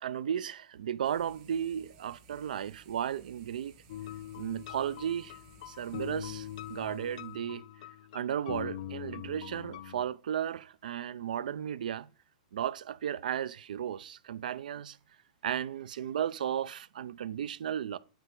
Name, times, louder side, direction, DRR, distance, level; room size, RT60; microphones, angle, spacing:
voice 1, 0.0-3.7 4.4-5.4 5.7-7.6 8.1-12.1 12.5-15.0 15.4-18.0, right 9 dB, 85° right, 0.4 m, -34 dB
sound 1, 1.0-7.4, right 3 dB, 40° right, 2.3 m, -59 dB
sound 2, 3.9-10.0, left 11 dB, 60° left, 0.5 m, -43 dB
9.0 x 3.3 x 5.3 m
supercardioid pair, 160°, 4 cm